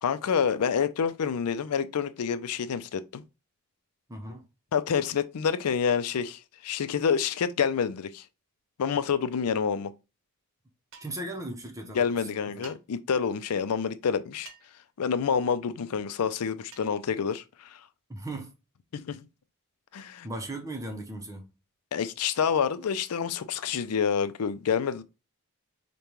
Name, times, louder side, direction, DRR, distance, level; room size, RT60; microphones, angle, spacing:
voice 1, 0.0-3.2 4.7-8.2 8.8-9.9 11.9-14.5 15.0-17.8 18.9-19.2 19.9-20.3 21.9-25.0, left 6 dB, 85° left, 0.4 m, -28 dB
voice 2, 4.1-4.5 11.0-12.7 18.1-18.6 20.2-21.5, right 1 dB, 15° right, 0.6 m, -38 dB
sound 1, 10.9-11.3 12.6-12.8 14.5-14.8 16.7-16.9, right 5 dB, 60° right, 0.8 m, -49 dB
5.1 x 2.2 x 3.0 m
head